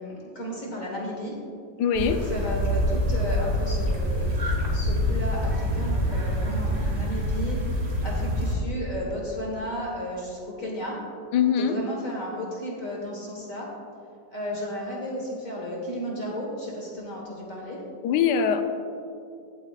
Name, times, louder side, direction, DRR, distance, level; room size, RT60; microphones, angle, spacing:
voice 1, 0.0-1.4 2.1-11.0 11.6-13.7 14.3-17.8, equal, 45° left, -2 dB, 1.8 m, -33 dB
voice 2, 1.8-2.2 11.3-11.8 18.0-18.6, left 7 dB, 70° left, 7 dB, 1.2 m, -22 dB
sound 1, 1.9-8.5, equal, 35° right, 1.8 m, -26 dB
16.5 x 8.5 x 2.4 m, 2.4 s
omnidirectional pair, 2.0 m